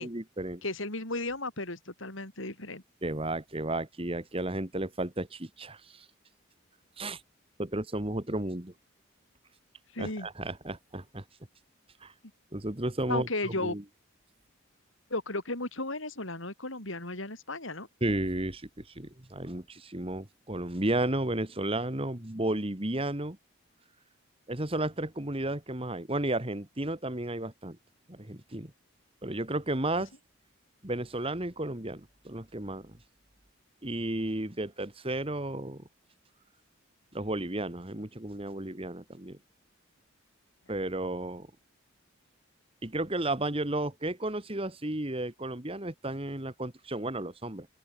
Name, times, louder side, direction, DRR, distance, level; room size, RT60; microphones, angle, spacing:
voice 1, 0.0-0.6 3.0-6.1 7.0-7.2 7.6-8.7 10.0-11.2 12.0-12.1 12.5-13.8 18.0-23.4 24.5-27.8 28.1-28.7 29.2-30.1 30.8-32.9 33.8-35.8 37.1-39.4 40.7-41.5 42.8-47.7, right 1 dB, 25° right, 1.9 m, -33 dB
voice 2, 0.6-2.8 9.9-10.3 13.1-13.8 15.1-17.9, left 2 dB, 70° left, 6.5 m, -34 dB
open air
head